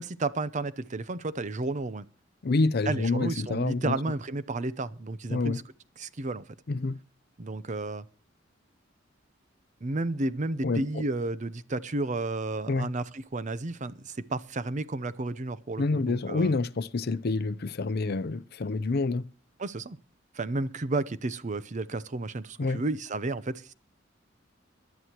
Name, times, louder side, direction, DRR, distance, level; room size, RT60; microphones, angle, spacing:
voice 1, 0.0-2.0 2.9-5.6 6.0-6.4 7.4-8.1 9.8-16.5 19.6-20.0 20.3-23.7, right 2 dB, 40° right, 0.7 m, -32 dB
voice 2, 2.4-4.0 5.3-5.6 6.7-7.0 10.6-11.0 12.7-12.9 15.8-19.3 22.6-22.8, left 3 dB, 55° left, 0.6 m, -28 dB
22.0 x 11.5 x 3.0 m
head